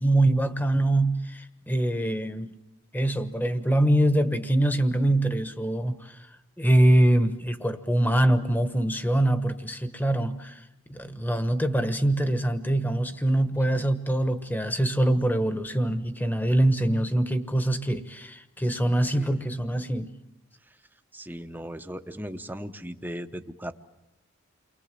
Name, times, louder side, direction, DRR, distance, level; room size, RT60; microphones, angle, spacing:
voice 1, 0.0-2.5 2.9-6.2 6.6-10.6 10.9-20.1, right 1 dB, 10° left, 1.2 m, -24 dB
voice 2, 21.1-23.7, equal, 10° right, 0.9 m, -37 dB
29.5 x 23.5 x 7.6 m
head